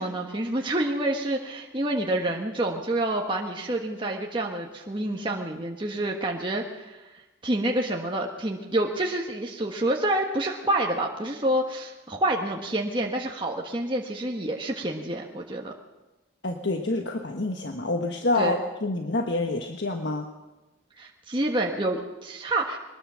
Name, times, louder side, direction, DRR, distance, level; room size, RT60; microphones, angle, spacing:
voice 1, 0.0-7.0 7.4-15.7 18.4-18.5 21.0-22.8, right 1 dB, 25° right, 0 dB, 1.4 m, -28 dB
voice 2, 16.4-20.3, left 2 dB, 70° left, 3 dB, 1.3 m, -27 dB
22.0 x 20.5 x 6.3 m, 1.1 s
head